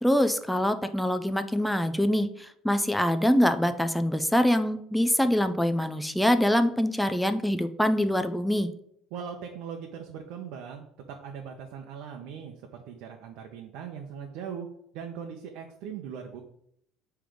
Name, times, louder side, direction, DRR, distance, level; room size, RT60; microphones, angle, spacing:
voice 1, 0.0-8.7, equal, ahead, 8 dB, 0.4 m, -24 dB
voice 2, 9.1-14.7 14.9-16.4, right 7 dB, 75° right, 2 dB, 0.8 m, -40 dB
7.7 x 3.4 x 5.0 m, 0.71 s
cardioid pair, 160°, 0 cm